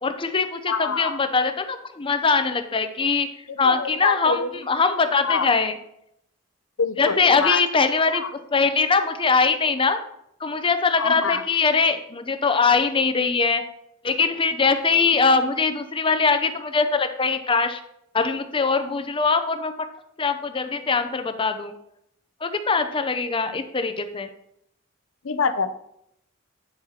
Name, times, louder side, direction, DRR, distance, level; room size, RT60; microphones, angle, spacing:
voice 1, 0.0-3.3 3.6-5.8 7.0-8.2 8.5-10.0 10.4-13.6 14.0-17.8 18.1-19.7 20.2-21.7 22.4-24.3, left 4 dB, 25° left, 9 dB, 0.6 m, -22 dB
voice 2, 0.7-1.2 3.5-4.5 5.2-5.5 6.8-7.6 8.1-8.3 11.0-11.4 25.2-25.7, left 5 dB, 70° left, 11 dB, 0.6 m, -25 dB
8.9 x 7.6 x 2.9 m, 0.77 s
head